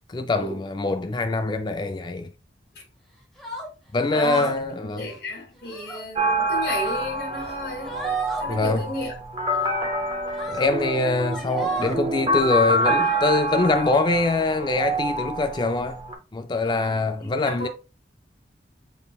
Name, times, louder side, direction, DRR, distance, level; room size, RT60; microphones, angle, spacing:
voice 1, 0.1-2.3 3.9-5.1 8.5-8.9 10.5-16.0 16.3-17.7, left 3 dB, 25° left, 0.3 m, -24 dB
sound 1, 3.4-3.7 4.1-4.7 5.0-5.2 5.6-6.0 6.5-7.0 7.4-7.5 7.8-8.4 9.5-9.7 10.3-10.7 11.1-12.0 12.8-13.2, equal, ahead, 1.1 m, -36 dB
voice 2, 4.1-8.1 8.4-9.1 16.6-17.7, left 1 dB, 70° left, 2.3 m, -33 dB
sound 2, 6.1-16.1, right 1 dB, 25° right, 0.7 m, -26 dB
5.7 x 4.1 x 2.3 m
head